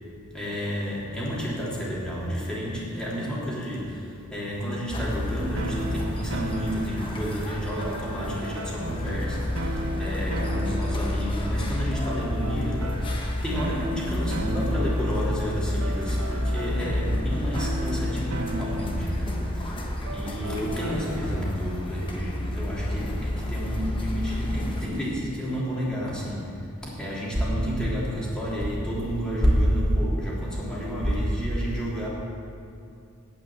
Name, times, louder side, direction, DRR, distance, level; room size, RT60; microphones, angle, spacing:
voice 1, 0.3-32.1, equal, 5° left, -7 dB, 3.3 m, -30 dB
sound 1, 4.9-24.8, left 1 dB, 25° left, 1.2 m, -30 dB
sound 2, 5.6-21.5, right 1 dB, 80° right, 1.1 m, -36 dB
17.0 x 6.0 x 7.4 m, 2.5 s
head